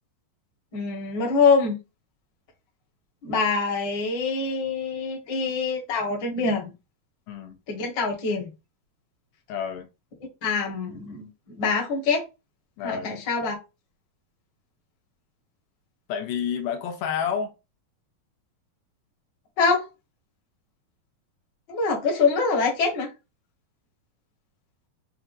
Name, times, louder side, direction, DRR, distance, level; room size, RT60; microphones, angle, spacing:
voice 1, 0.7-1.7 3.2-6.7 7.7-8.5 10.4-12.2 12.8-13.5 19.6-19.8 21.7-23.1, left 4 dB, 45° left, 1.4 m, -24 dB
voice 2, 7.3-7.6 9.5-9.9 12.8-13.1 16.1-17.5, left 7 dB, 85° left, 2.5 m, -29 dB
6.9 x 2.4 x 2.6 m
omnidirectional pair, 4.2 m